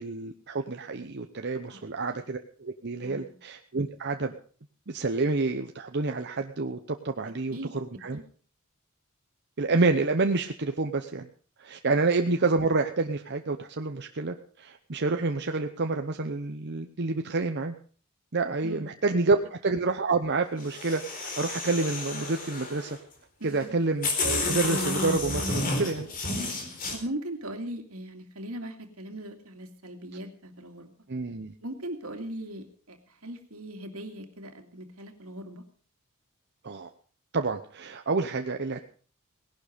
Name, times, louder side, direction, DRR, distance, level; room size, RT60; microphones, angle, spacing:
voice 1, 0.0-4.3 4.9-8.2 9.6-11.3 11.6-17.7 18.3-23.0 23.4-26.1 31.1-31.5 36.6-36.9 37.3-38.8, right 3 dB, 55° right, 5 dB, 0.9 m, -28 dB
voice 2, 3.0-3.3 7.2-7.8 8.1-8.2 11.9-12.0 18.6-18.9 23.4-23.8 26.9-30.9 31.6-35.6, right 1 dB, 80° right, 5 dB, 2.5 m, -39 dB
sound 1, 20.6-22.9 23.6-23.7 24.0-26.9, left 2 dB, 40° left, 4.1 m, -31 dB
18.0 x 11.5 x 5.1 m, 0.43 s
head